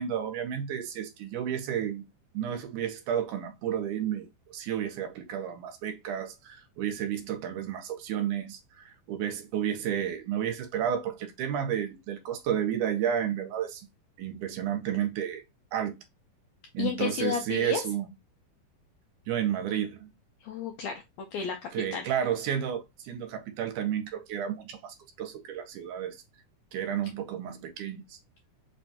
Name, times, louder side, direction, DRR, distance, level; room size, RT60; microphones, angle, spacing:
voice 1, 0.0-2.1 2.3-13.8 14.2-15.4 15.7-16.0 16.7-18.1 19.3-20.1 21.7-26.2 26.7-28.2, right 9 dB, 80° right, 2.1 m, -31 dB
voice 2, 16.8-17.8 20.4-21.6 21.9-22.1, left 8 dB, 85° left, 1.6 m, -32 dB
5.1 x 2.2 x 2.7 m
omnidirectional pair, 3.7 m